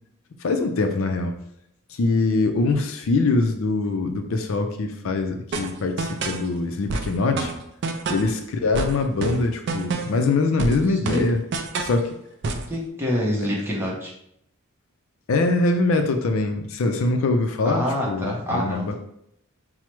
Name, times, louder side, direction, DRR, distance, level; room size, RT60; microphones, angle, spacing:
voice 1, 0.4-1.4 1.9-7.5 8.1-11.4 11.8-12.2 15.3-18.9, left 3 dB, 65° left, 5 dB, 0.4 m, -23 dB
sound 1, 5.5-6.5 6.9-8.4 8.7-10.3 10.6-12.0 12.4-12.7, right 3 dB, 50° right, 0.3 m, -28 dB
voice 2, 12.7-14.1 17.6-18.9, equal, 10° right, -3 dB, 0.7 m, -26 dB
4.5 x 2.0 x 3.0 m, 0.74 s
head